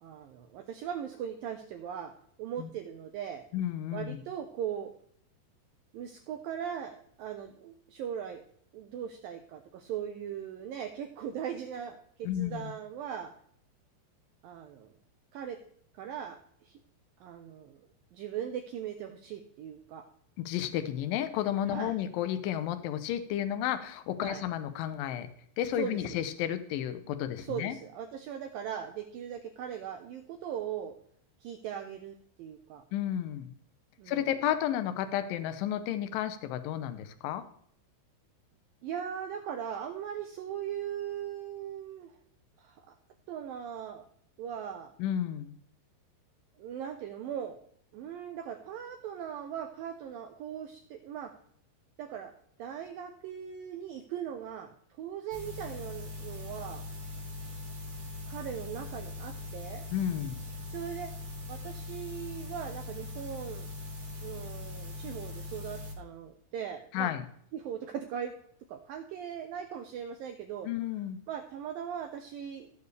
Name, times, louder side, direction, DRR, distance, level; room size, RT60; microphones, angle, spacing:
voice 1, 0.0-2.1 2.4-3.4 3.9-4.9 5.9-8.4 8.7-13.3 14.4-14.9 15.3-15.6 16.0-16.8 17.2-20.1 21.7-21.9 24.2-24.4 25.8-26.0 27.4-30.9 31.4-32.9 34.0-34.2 38.8-42.1 42.6-42.9 43.3-44.1 44.4-45.0 46.6-47.6 47.9-51.3 52.0-52.3 52.6-56.8 58.3-59.9 60.7-61.1 61.5-63.7 64.2-67.1 67.5-68.4 68.7-70.7 71.3-72.8, right 9 dB, 90° right, 6 dB, 2.0 m, -39 dB
voice 2, 3.5-4.2 12.2-12.7 20.4-25.3 25.6-27.7 32.9-33.5 34.1-37.4 45.0-45.6 59.9-60.4 66.9-67.2 70.6-71.2, left 11 dB, 85° left, 10 dB, 2.0 m, -32 dB
sound 1, 55.3-65.9, left 2 dB, 30° right, 3.1 m, -41 dB
16.0 x 7.0 x 3.3 m, 0.65 s
omnidirectional pair, 5.0 m